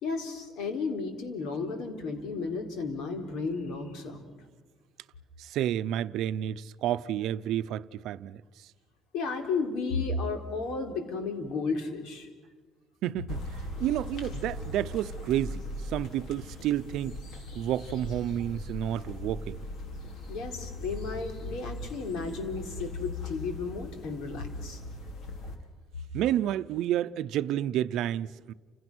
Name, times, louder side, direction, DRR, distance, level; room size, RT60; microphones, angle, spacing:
voice 1, 0.0-4.2 9.1-12.3 20.3-24.8, left 4 dB, 80° left, 3.9 m, -33 dB
voice 2, 5.4-8.7 13.0-17.2 17.5-19.6 26.1-28.5, right 12 dB, 65° right, 0.7 m, -30 dB
sound 1, 13.3-25.5, left 2 dB, 55° left, 3.7 m, -39 dB
30.0 x 27.5 x 6.2 m
cardioid pair, 175°, 0 cm